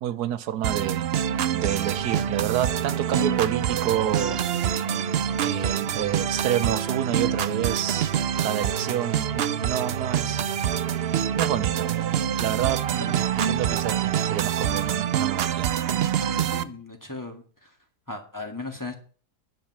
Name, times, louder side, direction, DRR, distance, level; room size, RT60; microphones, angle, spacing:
voice 1, 0.0-1.1 1.5-4.4 5.4-8.1 8.4-10.4 11.3-11.9 12.4-15.7, right 11 dB, 80° right, 1.3 m, -29 dB
sound 1, 0.6-16.6, right 9 dB, 65° right, 0.6 m, -26 dB
sound 2, 1.9-13.0, left 9 dB, 60° left, 1.3 m, -47 dB
voice 2, 16.2-17.7 18.1-18.9, left 2 dB, 10° left, 1.8 m, -37 dB
10.5 x 6.2 x 7.3 m
omnidirectional pair, 1.7 m